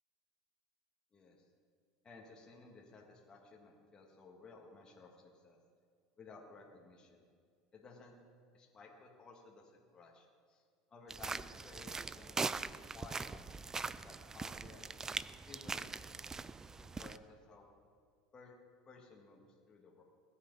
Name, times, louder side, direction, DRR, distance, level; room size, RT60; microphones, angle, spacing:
voice 1, 1.1-1.5 2.0-5.6 6.2-7.3 7.7-8.1 8.5-10.6 10.9-12.5 12.9-14.9 15.5-16.5 16.8-17.6 18.3-18.5 18.9-20.0, left 3 dB, 30° left, -2 dB, 2.3 m, -57 dB
sound 1, 11.1-17.2, right 4 dB, 20° right, 0.4 m, -42 dB
20.5 x 8.4 x 4.2 m, 2.1 s
supercardioid pair, 95°, 3 cm